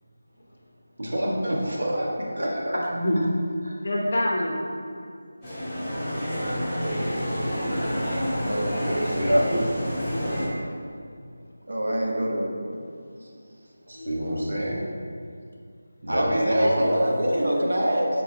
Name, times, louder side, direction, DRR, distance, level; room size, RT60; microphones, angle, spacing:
voice 1, 1.0-2.1 2.4-2.8 8.8-9.6 13.9-14.8 16.0-17.1, equal, 60° right, -4 dB, 1.5 m, -25 dB
voice 2, 2.7-3.3 3.7-4.6 13.9-14.8, left 1 dB, 40° left, -2 dB, 0.9 m, -27 dB
sound 1, 5.4-10.5, equal, ahead, 1.1 m, -28 dB
voice 3, 8.4-8.7 11.7-12.5 16.1-18.1, equal, 80° right, -1 dB, 1.1 m, -25 dB
5.6 x 4.1 x 4.6 m, 2.3 s
figure-of-eight pair, 180°, 0 cm